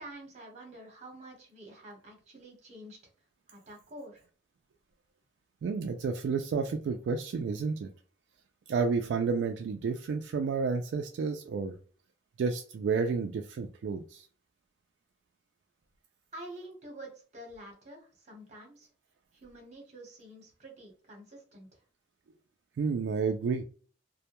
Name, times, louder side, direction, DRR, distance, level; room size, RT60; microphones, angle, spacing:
voice 1, 0.0-3.0 3.5-4.2 16.3-18.9 19.3-21.8, right 1 dB, 40° right, 0 dB, 1.0 m, -48 dB
voice 2, 5.6-7.9 8.7-11.7 12.4-14.2 22.8-23.6, right 5 dB, 80° right, 5 dB, 0.3 m, -31 dB
2.1 x 2.1 x 2.9 m, 0.40 s
head